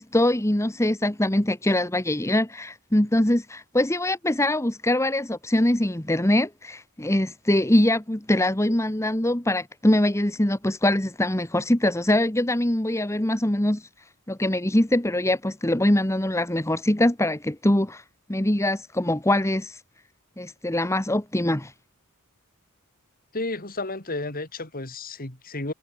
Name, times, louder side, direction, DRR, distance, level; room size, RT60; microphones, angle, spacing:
voice 1, 0.0-13.9 14.3-18.0 18.3-19.8 20.4-21.7, left 1 dB, 15° left, 1.3 m, -23 dB
voice 2, 23.3-25.7, left 2 dB, 40° left, 3.1 m, -32 dB
head